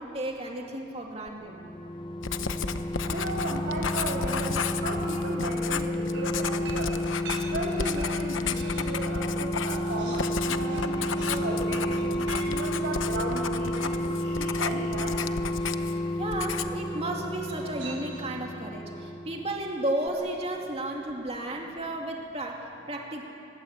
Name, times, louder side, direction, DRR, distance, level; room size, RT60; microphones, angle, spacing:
voice 1, 0.0-1.6 16.2-23.2, right 1 dB, 30° right, 1 dB, 2.5 m, -33 dB
sound 1, 1.3-19.8 20.1-20.2, left 1 dB, 25° left, 0.7 m, -31 dB
Writing, 2.2-16.0 16.3-16.9, left 5 dB, 80° left, 1.0 m, -33 dB
voice 2, 3.1-7.0 7.5-12.1 12.5-15.2, right 1 dB, 60° right, -4 dB, 2.6 m, -35 dB
sound 2, 6.1-9.0 9.4-14.4 15.5-16.1 17.4-18.4, right 4 dB, 80° right, 6.3 m, -46 dB
24.0 x 22.0 x 8.5 m, 2.7 s
head